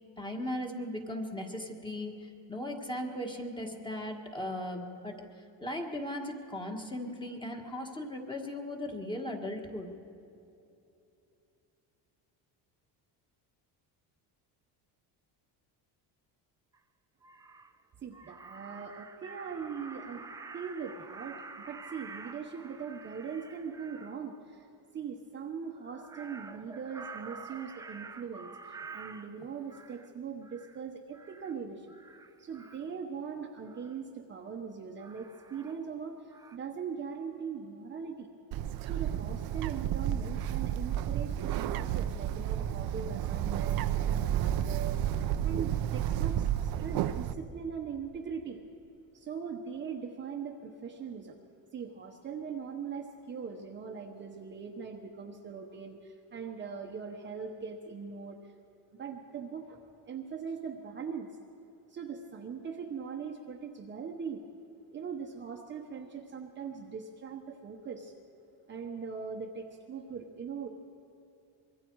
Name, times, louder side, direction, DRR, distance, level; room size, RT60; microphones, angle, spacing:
voice 1, 0.2-5.2 5.6-9.9, left 1 dB, 10° left, 2 dB, 1.7 m, -37 dB
Crow, 16.7-16.8 17.2-17.7 18.1-24.2 25.7-30.1 30.4-30.8 31.1-31.5 31.9-32.9 33.7-34.0 35.0-36.0 36.3-36.6, right 4 dB, 10° right, 0.4 m, -48 dB
voice 2, 18.0-20.2 20.5-24.7 24.9-31.9 32.4-38.3 38.8-48.6 49.1-51.4 51.7-58.5 59.0-61.3 61.9-64.4 64.9-68.1 68.7-70.7, right 6 dB, 25° right, 1 dB, 1.0 m, -41 dB
Bird, 38.5-47.3, right 11 dB, 55° right, 0.7 m, -31 dB
25.0 x 23.0 x 4.7 m, 2.7 s
cardioid pair, 170°, 44 cm